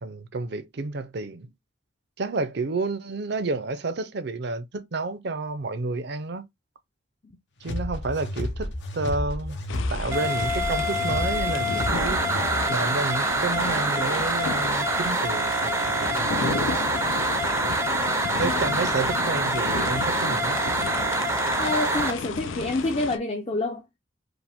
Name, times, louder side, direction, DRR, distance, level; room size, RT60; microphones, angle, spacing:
voice 1, 0.0-1.5 2.2-6.4 7.6-9.6 9.9-12.2 12.7-16.8 18.4-20.6, right 3 dB, 60° right, 0.6 m, -30 dB
sound 1, 7.6-12.7, left 1 dB, 65° left, 0.8 m, -31 dB
sound 2, 9.7-23.2, left 5 dB, 85° left, 0.5 m, -33 dB
sound 3, 10.1-22.1, right 2 dB, 15° right, 0.5 m, -26 dB
voice 2, 21.6-23.9, left 2 dB, 30° left, 0.6 m, -27 dB
4.9 x 2.2 x 3.5 m
head